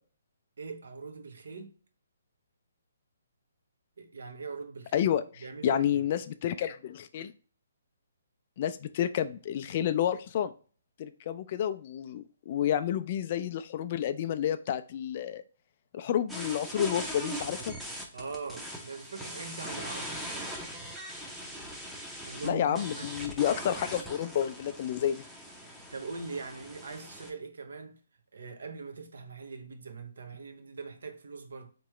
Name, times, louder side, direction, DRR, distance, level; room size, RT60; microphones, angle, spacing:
voice 1, 0.6-1.7 4.0-5.1 5.4-6.0 18.1-20.3 22.2-23.1 25.7-28.0 28.3-31.7, right 4 dB, 70° right, 0.7 m, -42 dB
voice 2, 4.9-7.3 8.6-10.5 11.0-15.4 15.9-17.7 22.4-25.2, left 10 dB, 45° left, 0.4 m, -30 dB
sound 1, 16.3-27.3, equal, 5° right, 0.6 m, -41 dB
3.6 x 3.0 x 3.1 m
hypercardioid pair, 140°, 0 cm